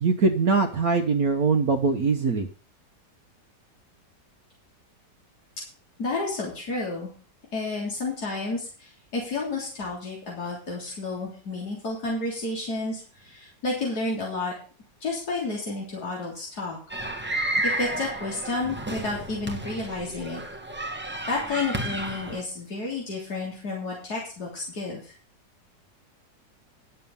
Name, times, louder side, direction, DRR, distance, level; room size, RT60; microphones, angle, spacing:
voice 1, 0.0-2.5, right 4 dB, 60° right, 4 dB, 1.4 m, -22 dB
voice 2, 6.0-7.1 7.5-14.5 15.0-16.8 17.8-20.4 21.3-25.1, left 3 dB, 60° left, -4 dB, 4.0 m, -31 dB
sound 1, 16.9-22.4, right 1 dB, 10° right, 0.9 m, -31 dB
11.0 x 6.9 x 7.1 m, 0.39 s
omnidirectional pair, 1.9 m